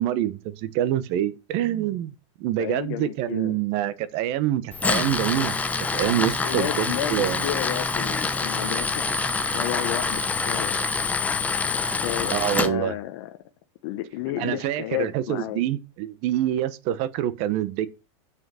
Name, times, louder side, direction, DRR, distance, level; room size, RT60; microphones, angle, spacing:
voice 1, 0.0-2.1 2.4-5.6 5.9-7.4 12.3-13.0 14.4-17.9, right 12 dB, 40° right, 1.0 m, -26 dB
voice 2, 2.6-3.6 6.4-9.0 9.5-10.8 12.0-13.3 13.8-15.6, left 13 dB, 50° left, 0.9 m, -32 dB
Tools, 4.7-12.7, left 4 dB, 10° left, 0.7 m, -26 dB
7.9 x 6.2 x 5.6 m
supercardioid pair, 150°, 16 cm